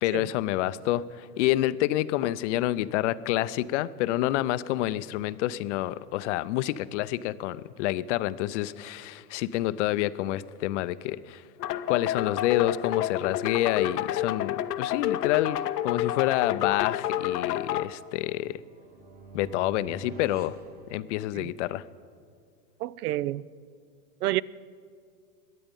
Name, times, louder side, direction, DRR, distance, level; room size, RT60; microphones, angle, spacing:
voice 1, 0.0-11.4 11.9-18.6 19.3-20.6 20.9-21.8, left 15 dB, 50° left, 0.5 m, -28 dB
sound 1, 11.6-17.9, left 12 dB, 85° left, 0.7 m, -29 dB
sound 2, 18.6-21.6, right 5 dB, 20° right, 1.2 m, -47 dB
voice 2, 22.8-23.4 24.2-24.4, right 16 dB, 70° right, 0.5 m, -29 dB
22.0 x 8.6 x 5.3 m
hypercardioid pair, 125°, 46 cm